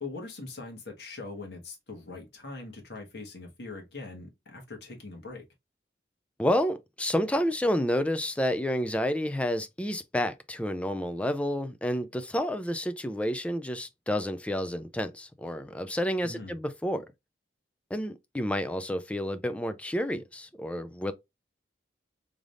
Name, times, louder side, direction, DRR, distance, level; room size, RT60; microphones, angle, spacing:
voice 1, 0.0-5.5 16.2-16.6, left 3 dB, 70° left, 1.4 m, -42 dB
voice 2, 6.4-17.1 17.9-21.1, equal, 5° left, 0.3 m, -30 dB
3.7 x 3.4 x 2.5 m
head